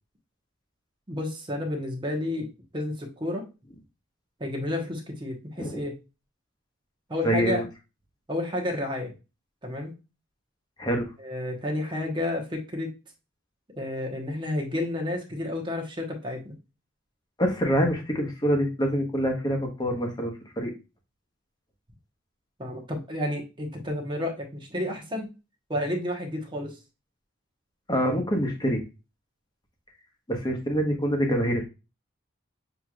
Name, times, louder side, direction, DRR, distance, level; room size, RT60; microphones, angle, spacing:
voice 1, 1.1-2.5 2.7-3.5 4.4-5.9 7.1-7.7 8.3-9.1 9.6-9.9 11.2-12.9 13.8-16.5 22.6-25.3 25.7-26.7, left 1 dB, 25° right, 1 dB, 1.1 m, -31 dB
voice 2, 7.2-7.6 10.8-11.1 17.4-20.7 27.9-28.8 30.3-31.6, equal, 20° left, 2 dB, 1.1 m, -25 dB
6.6 x 3.0 x 2.4 m, 0.28 s
head